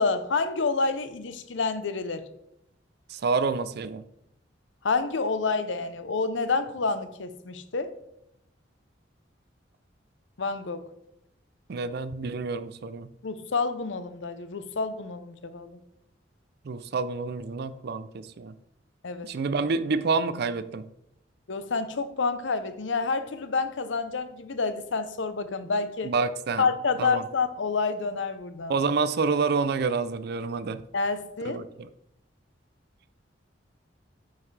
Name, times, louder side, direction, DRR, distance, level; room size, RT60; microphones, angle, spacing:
voice 1, 0.0-2.2 4.8-7.9 10.4-10.8 13.2-15.7 19.0-19.3 21.5-26.1 26.6-28.7 30.9-31.6, left 4 dB, 75° left, 11 dB, 0.7 m, -28 dB
voice 2, 3.1-4.0 11.7-13.1 16.6-18.5 19.2-20.9 26.0-26.7 27.0-27.2 28.7-30.8 31.4-31.9, right 4 dB, 60° right, 14 dB, 0.4 m, -28 dB
9.1 x 5.4 x 3.3 m, 0.80 s
head